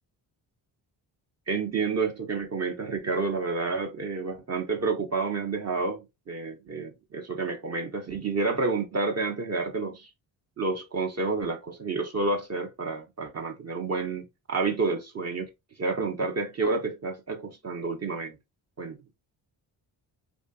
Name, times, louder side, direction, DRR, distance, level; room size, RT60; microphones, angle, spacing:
voice 1, 1.5-10.1 10.6-15.5 15.8-18.4 18.8-19.0, right 3 dB, 30° right, 0.6 m, -29 dB
2.5 x 2.4 x 2.2 m
supercardioid pair, 45°, 50 cm